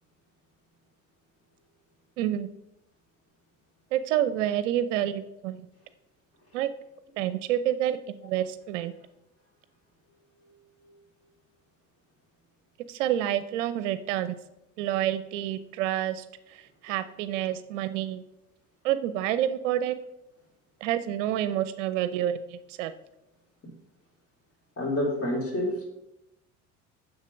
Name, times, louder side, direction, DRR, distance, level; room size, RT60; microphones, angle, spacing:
voice 1, 2.2-2.5 3.9-5.6 6.5-6.7 7.2-8.9 12.9-14.4 14.8-18.2 18.8-20.0 20.8-22.9, right 11 dB, 60° right, 13 dB, 0.6 m, -28 dB
voice 2, 24.8-25.8, left 1 dB, 35° left, -1 dB, 3.3 m, -28 dB
7.3 x 6.4 x 5.2 m, 0.90 s
figure-of-eight pair, 60°, 42 cm